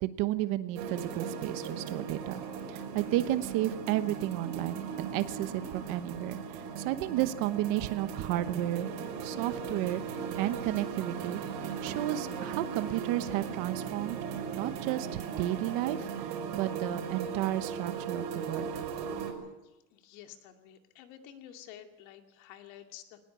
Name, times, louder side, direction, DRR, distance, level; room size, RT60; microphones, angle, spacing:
voice 1, 0.0-2.4 2.7-8.9 9.2-10.0 10.4-11.4 11.8-14.2 14.5-18.7, right 14 dB, 40° right, 12 dB, 1.0 m, -32 dB
sound 1, 0.8-19.3, right 6 dB, 75° right, 5.6 m, -38 dB
voice 2, 19.6-23.2, left 11 dB, 55° left, 5 dB, 2.6 m, -51 dB
21.0 x 20.0 x 8.3 m, 1.0 s
supercardioid pair, 170°, 49 cm